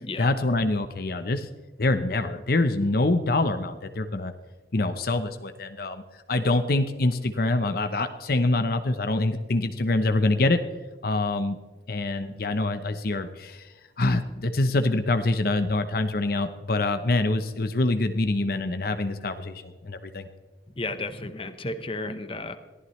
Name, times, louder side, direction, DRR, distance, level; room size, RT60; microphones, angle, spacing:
voice 1, 0.2-1.5 1.8-4.3 4.7-6.0 6.3-10.6 11.0-11.6 11.9-13.7 14.0-20.3, left 2 dB, 55° left, 9 dB, 0.8 m, -25 dB
voice 2, 20.8-22.6, left 2 dB, 30° left, 9 dB, 1.0 m, -33 dB
22.5 x 14.5 x 3.2 m, 1.2 s
head